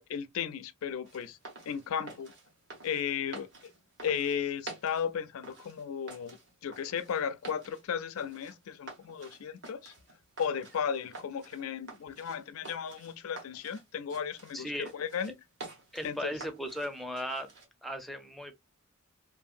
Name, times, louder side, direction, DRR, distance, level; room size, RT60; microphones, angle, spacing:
voice 1, 0.0-1.4 1.7-2.3 2.8-3.7 4.0-6.4 6.6-9.9 10.4-15.3 16.0-16.3, left 7 dB, 75° left, 0.4 m, -35 dB
sound 1, 1.0-17.7, right 3 dB, 60° right, 1.3 m, -50 dB
voice 2, 14.5-14.9 15.9-17.5 17.8-18.5, equal, ahead, 0.5 m, -37 dB
2.7 x 2.6 x 2.4 m
head